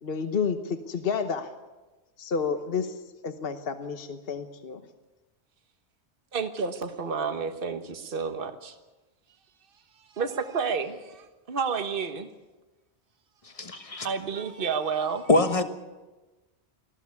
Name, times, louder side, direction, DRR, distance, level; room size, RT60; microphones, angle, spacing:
voice 1, 0.0-1.5 2.2-2.9 3.2-4.8, left 6 dB, 60° left, 8 dB, 1.3 m, -30 dB
voice 2, 6.3-8.7 10.2-12.3 14.0-15.3, right 5 dB, 55° right, 8 dB, 1.4 m, -30 dB
voice 3, 13.6-14.1 15.3-15.6, left 2 dB, 30° left, 8 dB, 1.4 m, -23 dB
20.0 x 14.5 x 9.6 m, 1.1 s
omnidirectional pair, 1.1 m